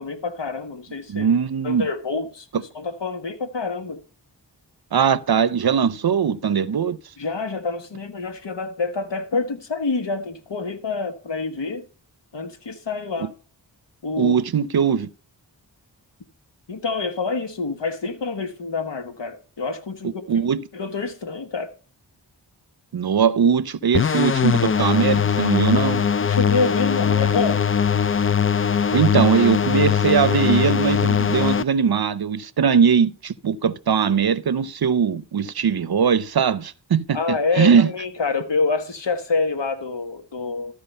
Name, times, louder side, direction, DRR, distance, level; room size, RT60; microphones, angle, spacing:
voice 1, 0.0-1.3 1.6-4.0 7.2-11.8 12.3-13.3 14.0-14.3 16.7-20.3 20.7-21.7 26.2-27.6 37.1-40.7, left 4 dB, 70° left, 1.5 m, -27 dB
voice 2, 1.1-1.9 4.9-7.0 13.2-13.3 14.2-15.1 20.3-20.6 22.9-26.0 28.9-37.9, right 7 dB, 55° right, 0.7 m, -20 dB
sound 1, 23.9-31.6, left 7 dB, 30° left, 0.4 m, -20 dB
13.0 x 4.8 x 5.5 m
wide cardioid pair, 55°, 44 cm